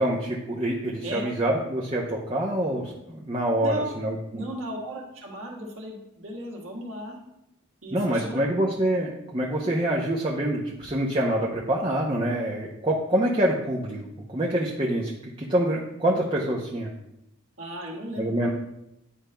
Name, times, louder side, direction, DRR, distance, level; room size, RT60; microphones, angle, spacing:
voice 1, 0.0-4.2 7.9-16.9 18.2-18.5, right 1 dB, 25° right, -3 dB, 0.6 m, -26 dB
voice 2, 3.6-4.0 4.3-7.2 7.8-8.4 17.6-18.5, equal, 75° right, -1 dB, 1.5 m, -35 dB
10.0 x 5.0 x 2.2 m, 0.85 s
head